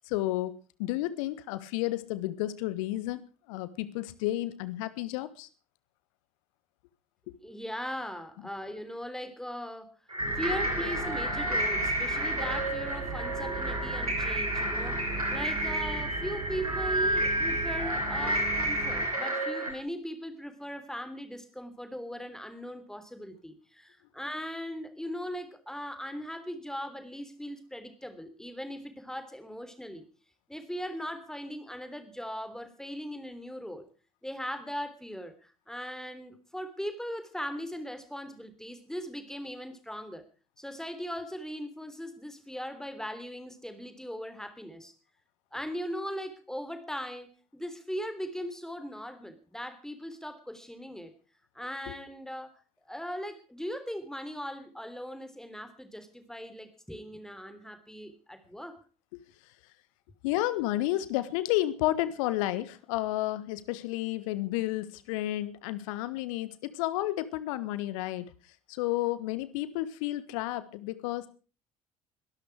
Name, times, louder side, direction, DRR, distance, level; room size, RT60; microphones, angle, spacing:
voice 1, 0.1-0.5 0.8-5.5 7.3-7.4 51.9-52.0 59.1-59.2 60.2-68.3 68.7-71.3, left 16 dB, 65° left, 16 dB, 1.4 m, -31 dB
voice 2, 7.4-9.9 10.4-15.0 15.3-30.0 30.5-33.9 34.2-35.3 35.7-40.2 40.6-44.9 45.5-47.3 47.5-51.1 51.5-52.5 52.9-58.8, equal, 5° left, 9 dB, 3.4 m, -39 dB
sound 1, 10.1-19.7, right 1 dB, 90° right, 3.5 m, -30 dB
sound 2, 10.2-19.0, right 3 dB, 65° right, 6.1 m, -39 dB
22.0 x 13.0 x 4.9 m, 0.38 s
figure-of-eight pair, 55°, 19 cm